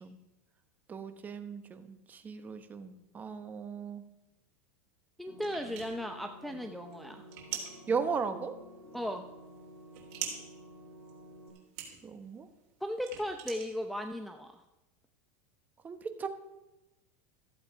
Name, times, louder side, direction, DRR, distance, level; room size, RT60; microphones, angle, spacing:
voice 1, 0.9-4.0 7.9-8.6 12.0-12.5 15.8-16.3, right 5 dB, 20° right, 9 dB, 1.1 m, -36 dB
voice 2, 5.2-7.2 8.9-9.2 12.8-14.6, equal, ahead, 4 dB, 0.6 m, -36 dB
sound 1, 5.3-11.5, equal, 20° left, 3.0 m, -52 dB
sound 2, 5.4-14.3, right 9 dB, 60° right, 3.3 m, -45 dB
14.0 x 7.9 x 5.0 m, 0.98 s
supercardioid pair, 130°, 8 cm